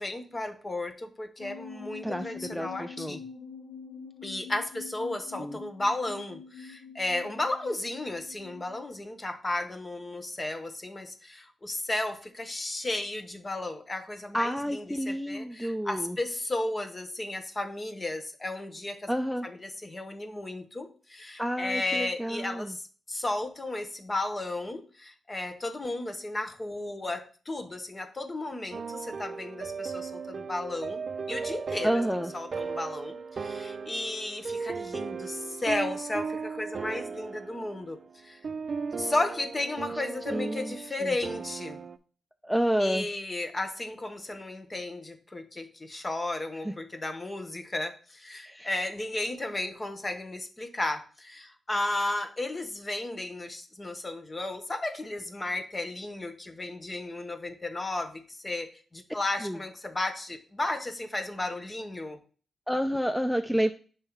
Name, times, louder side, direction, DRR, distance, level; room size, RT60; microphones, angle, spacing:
voice 1, 0.0-3.2 4.2-19.1 19.4-22.8 23.1-31.0 31.3-32.0 32.3-38.4 39.0-41.8 42.8-62.2, left 2 dB, 30° left, 8 dB, 1.1 m, -34 dB
sound 1, 1.4-8.8, left 5 dB, 65° left, 0.6 m, -45 dB
voice 2, 2.0-3.2 5.4-5.6 14.3-16.2 19.1-19.5 21.4-22.8 31.8-32.3 40.3-40.7 41.0-41.1 42.4-43.1 46.6-46.7 48.4-48.7 59.4-59.6 62.7-63.7, equal, ahead, 7 dB, 0.5 m, -29 dB
sound 2, 28.7-42.0, right 5 dB, 55° right, 0.5 m, -37 dB
5.5 x 3.5 x 5.7 m, 0.40 s
cardioid pair, 55°, 0 cm